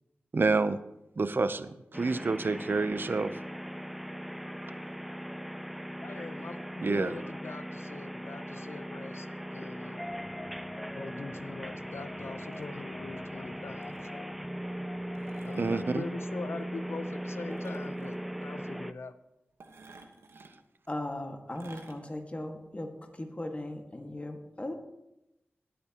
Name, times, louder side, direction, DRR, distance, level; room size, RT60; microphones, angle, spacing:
voice 1, 0.3-0.8 1.2-3.3 6.8-7.1 15.6-16.0, right 3 dB, 55° right, 12 dB, 0.7 m, -28 dB
sound 1, 1.9-18.9, equal, ahead, 0.5 m, -39 dB
voice 2, 6.0-9.3 9.5-10.0 10.9-14.4 15.4-19.1, left 4 dB, 75° left, 11 dB, 0.8 m, -42 dB
sound 2, 9.9-15.9, left 3 dB, 50° left, 1.2 m, -50 dB
sound 3, 12.4-12.7 13.8-14.1 15.1-15.9 17.5-18.1 19.6-20.5 21.6-22.0 22.5-22.6, right 3 dB, 90° right, 1.3 m, -53 dB
voice 3, 20.9-24.7, left 1 dB, 30° left, 3 dB, 1.8 m, -38 dB
19.5 x 8.5 x 3.0 m, 0.90 s
cardioid pair, 50°, 4 cm